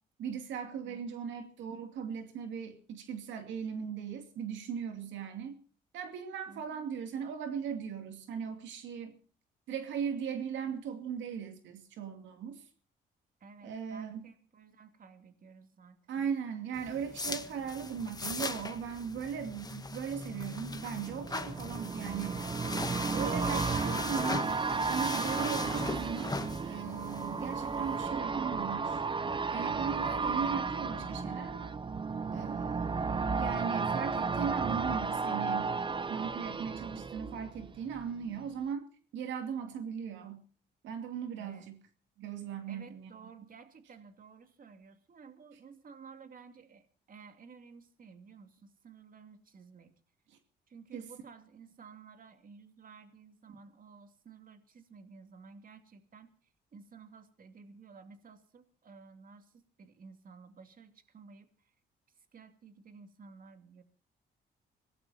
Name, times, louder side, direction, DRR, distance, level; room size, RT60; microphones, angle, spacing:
voice 1, 0.2-5.6 5.9-9.2 9.7-12.7 13.6-14.2 16.1-22.5 23.1-24.5 24.9-26.3 26.6-29.0 29.5-31.8 32.3-32.9 33.4-35.7 36.1-38.9 39.1-40.4 40.8-41.8 42.2-43.1 50.3-50.4 50.9-51.1, right 7 dB, 85° right, 2.5 m, -38 dB
voice 2, 0.8-1.2 6.5-6.9 13.4-16.3 22.9-23.5 41.3-41.7 42.7-49.9 50.7-61.7 62.1-63.8, right 5 dB, 50° right, 2.7 m, -54 dB
sound 1, 16.7-28.1, left 3 dB, 20° left, 1.6 m, -40 dB
sound 2, 20.2-38.0 38.4-38.5, right 4 dB, 25° right, 0.9 m, -34 dB
sound 3, 21.6-31.2, left 7 dB, 40° left, 0.9 m, -53 dB
25.5 x 18.5 x 2.8 m
cardioid pair, 80°, 19 cm